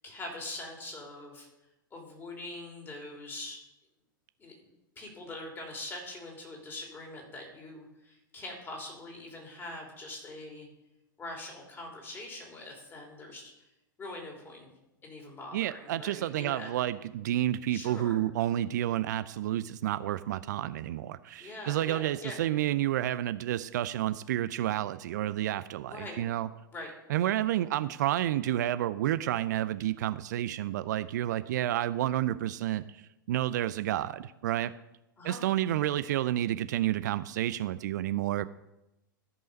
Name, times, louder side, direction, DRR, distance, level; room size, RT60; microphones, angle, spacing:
voice 1, 0.0-1.5 1.9-3.6 4.4-4.5 5.0-10.7 11.2-13.5 14.0-14.7 15.0-16.7 17.7-18.2 21.4-22.4 25.9-26.3 26.7-26.9 35.2-35.4, left 2 dB, 20° left, 0 dB, 3.2 m, -43 dB
voice 2, 15.5-26.5 27.1-33.0 33.3-34.7 35.2-38.4, right 13 dB, 55° right, 14 dB, 0.4 m, -30 dB
14.0 x 5.5 x 5.2 m, 0.93 s
figure-of-eight pair, 100°, 11 cm